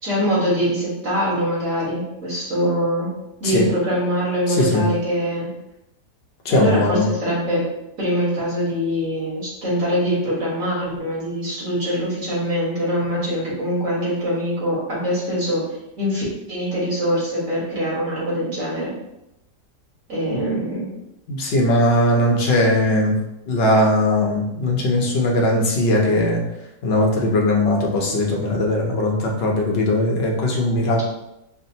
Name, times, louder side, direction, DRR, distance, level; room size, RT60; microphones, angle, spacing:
voice 1, 0.0-3.1 3.4-5.5 6.5-7.6 8.0-15.6 16.0-18.9 20.1-20.9, equal, 50° right, -7 dB, 1.8 m, -23 dB
voice 2, 4.5-4.9 6.4-7.1 20.3-20.6 21.3-23.2 23.5-26.4 26.8-31.0, left 1 dB, 55° left, -1 dB, 0.7 m, -19 dB
4.9 x 2.1 x 2.7 m, 0.86 s
omnidirectional pair, 1.8 m